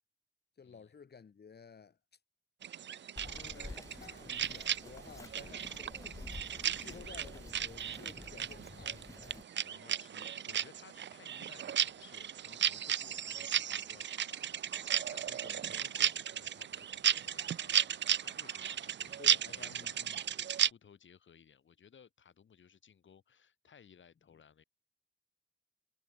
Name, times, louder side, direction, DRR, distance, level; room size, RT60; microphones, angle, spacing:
voice 1, 0.6-2.2 3.3-9.5 10.1-10.3 19.2-20.2, left 6 dB, 55° left, 5.2 m, -55 dB
sound 1, 2.6-20.7, right 9 dB, 70° right, 0.6 m, -35 dB
voice 2, 3.0-3.9 5.2-5.7 6.7-7.1 8.0-8.3 9.6-20.0 20.3-24.6, left 7 dB, 80° left, 7.2 m, -60 dB
Bird vocalization bird call bird song, 3.2-9.4, left 2 dB, 15° left, 0.8 m, -50 dB
wide cardioid pair, 130°, 19 cm